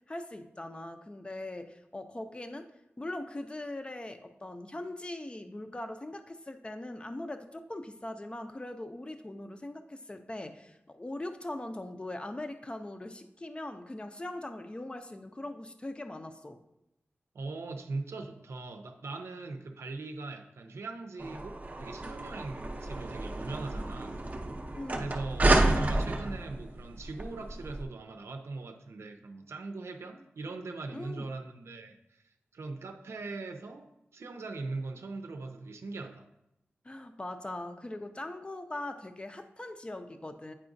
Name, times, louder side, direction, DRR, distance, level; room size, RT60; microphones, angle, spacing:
voice 1, 0.1-2.7 3.0-16.6 24.7-25.2 30.9-31.3 36.8-40.5, left 1 dB, 25° left, 8 dB, 0.5 m, -41 dB
voice 2, 17.3-24.2 25.0-36.3, right 3 dB, 90° right, 6 dB, 0.5 m, -40 dB
sound 1, 21.2-27.8, right 2 dB, 35° right, 0.6 m, -30 dB
8.6 x 4.8 x 2.6 m, 0.85 s
wide cardioid pair, 90°, 4 cm